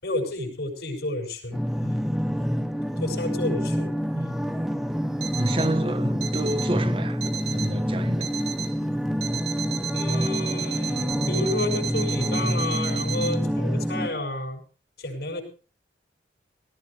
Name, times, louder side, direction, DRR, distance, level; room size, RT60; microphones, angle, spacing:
voice 1, 0.0-2.1 3.0-4.4 9.9-14.6 15.0-15.4, left 2 dB, 65° left, 6.5 m, -31 dB
sound 1, 1.5-14.1, equal, ahead, 1.1 m, -27 dB
Alarm, 5.2-5.8 6.2-6.8 7.2-7.8 8.2-8.8 9.2-13.3, right 10 dB, 65° right, 1.7 m, -34 dB
voice 2, 5.3-8.3, right 1 dB, 30° right, 1.2 m, -29 dB
18.0 x 17.5 x 3.4 m
head